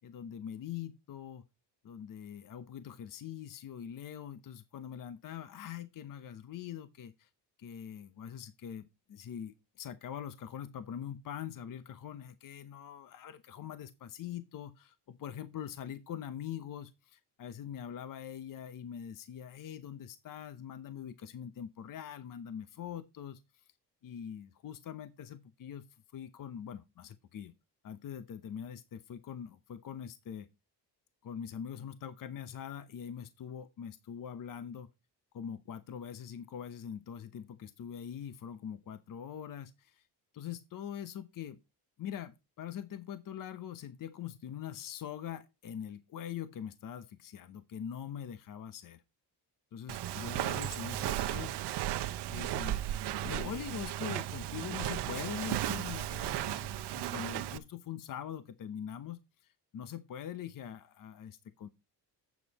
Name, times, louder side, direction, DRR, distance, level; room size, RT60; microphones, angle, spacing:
voice 1, 0.0-1.4 1.8-7.3 7.6-23.4 24.0-25.9 26.1-27.5 27.8-30.5 31.2-34.9 35.3-40.1 40.3-41.6 42.0-49.0 49.7-51.6 52.3-61.7, left 9 dB, 50° left, 0.8 m, -43 dB
Walk footsteps, 49.9-57.6, right 13 dB, 75° right, 0.9 m, -35 dB
8.3 x 7.1 x 4.1 m
cardioid pair, 110°, 40 cm